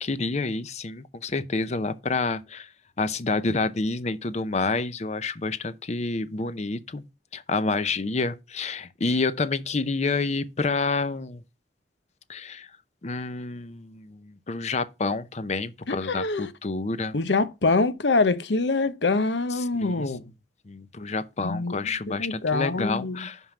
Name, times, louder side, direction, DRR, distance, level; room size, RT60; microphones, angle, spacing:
voice 1, 0.0-2.7 3.0-7.0 7.3-11.4 12.3-12.7 13.0-17.1 19.8-20.1 20.7-23.4, left 3 dB, 40° left, 0.6 m, -28 dB
voice 2, 15.9-16.5 17.1-20.2 21.4-21.8 22.2-23.3, left 3 dB, 75° left, 0.8 m, -25 dB
5.7 x 5.5 x 5.9 m
head